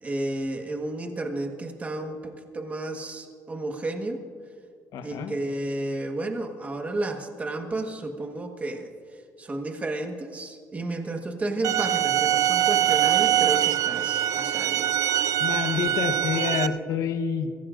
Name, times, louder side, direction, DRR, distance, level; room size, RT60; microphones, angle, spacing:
voice 1, 0.0-4.2 5.0-8.9 9.4-14.9, right 2 dB, 20° right, 4 dB, 1.4 m, -32 dB
voice 2, 4.9-5.3 15.4-17.5, left 7 dB, 70° left, 7 dB, 1.1 m, -28 dB
sound 1, 11.6-16.7, right 11 dB, 60° right, 0.4 m, -23 dB
23.5 x 16.0 x 2.5 m, 2.1 s
cardioid pair, 125°, 7 cm